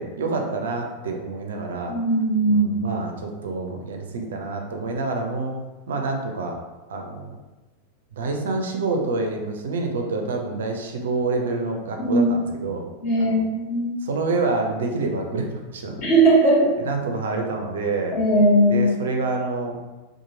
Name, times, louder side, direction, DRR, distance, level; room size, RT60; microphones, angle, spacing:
voice 1, 0.0-1.9 2.5-5.5 5.9-6.6 6.9-7.3 8.1-12.8 13.2-13.4 14.0-16.1 16.8-18.2 18.7-19.8, right 3 dB, 60° right, 3 dB, 0.4 m, -27 dB
voice 2, 1.9-2.8 12.0-12.3 13.0-13.9 16.0-16.7 18.1-18.9, right 1 dB, 45° left, -6 dB, 1.2 m, -18 dB
2.8 x 2.4 x 2.6 m, 1.1 s
figure-of-eight pair, 90°, 0 cm